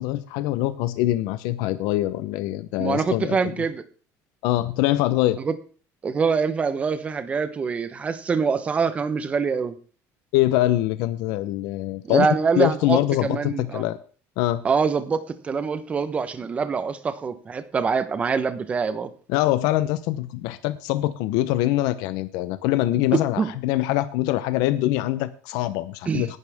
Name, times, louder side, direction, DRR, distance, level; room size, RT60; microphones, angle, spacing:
voice 1, 0.0-3.4 4.4-5.4 10.3-12.3 12.6-14.0 14.4-14.6 19.3-26.4, left 15 dB, 80° left, 12 dB, 0.9 m, -24 dB
voice 2, 2.8-3.8 5.4-5.5 6.0-9.7 12.0-13.8 14.6-19.1 23.4-23.5 26.1-26.3, right 5 dB, 20° right, 11 dB, 1.1 m, -24 dB
19.5 x 11.0 x 3.6 m, 0.41 s
cardioid pair, 175°, 7 cm